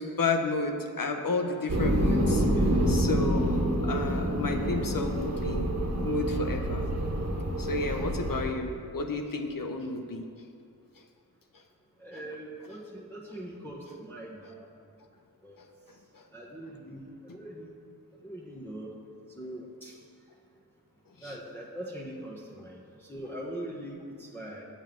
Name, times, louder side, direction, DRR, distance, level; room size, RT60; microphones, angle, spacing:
voice 1, 0.0-5.7 6.0-6.8 7.6-10.2 17.3-17.4 21.2-21.3, left 3 dB, 65° left, 4 dB, 0.9 m, -32 dB
sound 1, 1.7-8.5, equal, 45° right, 1.5 m, -27 dB
voice 2, 12.0-14.7 15.4-15.6 16.3-17.7 18.1-18.9 19.3-19.9 21.2-24.6, right 1 dB, 5° left, -5 dB, 1.3 m, -42 dB
7.3 x 5.8 x 7.1 m, 2.3 s
cardioid pair, 40°, 36 cm